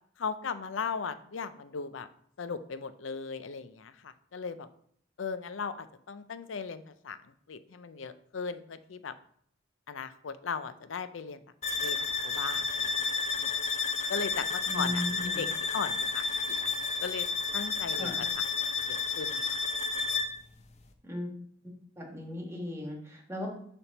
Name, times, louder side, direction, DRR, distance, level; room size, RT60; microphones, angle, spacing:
voice 1, 0.2-2.1 2.4-4.7 5.2-7.2 7.5-9.1 9.9-11.4 11.8-12.0 12.2-12.9 13.4-13.5 14.1-15.5 15.7-16.5 17.0-17.3 17.5-18.3 18.9-19.4, left 5 dB, 80° left, 13 dB, 0.5 m, -37 dB
sound 1, 11.6-20.4, left 4 dB, 35° left, 0.7 m, -31 dB
voice 2, 14.7-15.5 17.9-18.2 21.0-21.4 21.6-23.5, left 1 dB, 15° right, 1 dB, 1.5 m, -37 dB
6.9 x 3.5 x 5.8 m, 0.65 s
head